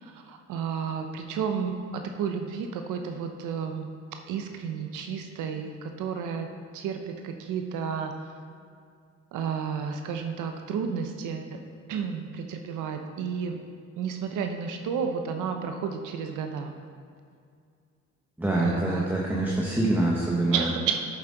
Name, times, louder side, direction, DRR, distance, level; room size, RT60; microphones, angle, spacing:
voice 1, 0.0-3.9 4.3-6.5 6.7-8.1 9.3-11.6 11.9-13.6 14.0-16.7 18.6-19.1 20.5-21.1, right 6 dB, 85° right, 5 dB, 0.7 m, -32 dB
voice 2, 18.4-20.7, right 1 dB, 5° right, -4 dB, 1.1 m, -25 dB
9.1 x 7.4 x 3.8 m, 2.3 s
cardioid pair, 90°, 30 cm